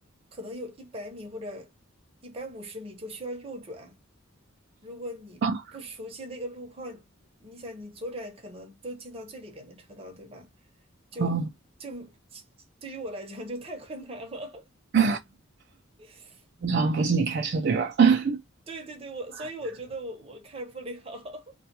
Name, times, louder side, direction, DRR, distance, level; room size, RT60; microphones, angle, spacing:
voice 1, 0.3-1.7 2.2-4.0 4.8-5.4 5.7-7.0 7.4-10.5 11.1-11.4 11.8-12.4 12.8-14.7 16.0-16.4 18.7-21.5, right 1 dB, 30° right, 0.7 m, -39 dB
voice 2, 5.4-5.8 11.2-11.4 14.9-15.2 16.6-18.4, right 5 dB, 55° right, 0.4 m, -23 dB
2.2 x 2.2 x 2.7 m
head